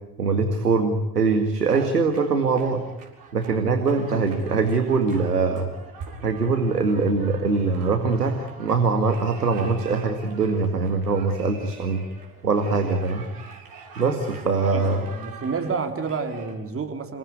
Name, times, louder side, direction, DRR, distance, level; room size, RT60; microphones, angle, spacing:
voice 1, 0.2-2.8 3.3-5.7 6.2-12.0 12.4-13.2 14.0-15.1, right 4 dB, 85° right, 6 dB, 2.1 m, -22 dB
sound 1, 1.7-16.5, right 5 dB, 45° right, 7.3 m, -44 dB
voice 2, 14.6-17.2, right 4 dB, 30° right, 6 dB, 3.7 m, -29 dB
28.0 x 19.5 x 9.7 m, 0.98 s
figure-of-eight pair, 65°, 46 cm